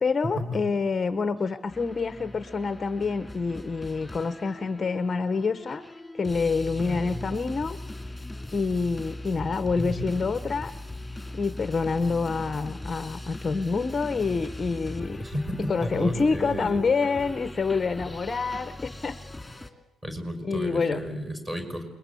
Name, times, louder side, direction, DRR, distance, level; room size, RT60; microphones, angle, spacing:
voice 1, 0.0-7.8 8.5-10.7 11.3-15.2 15.6-19.2 20.4-21.0, left 4 dB, 20° left, 10 dB, 1.0 m, -27 dB
sound 1, 1.7-19.7, left 1 dB, 5° left, 2.9 m, -40 dB
voice 2, 6.9-7.2 9.8-10.3 15.2-16.8 20.0-21.8, equal, 15° right, 6 dB, 5.3 m, -33 dB
28.5 x 21.5 x 8.4 m, 0.98 s
cardioid pair, 155°, 0 cm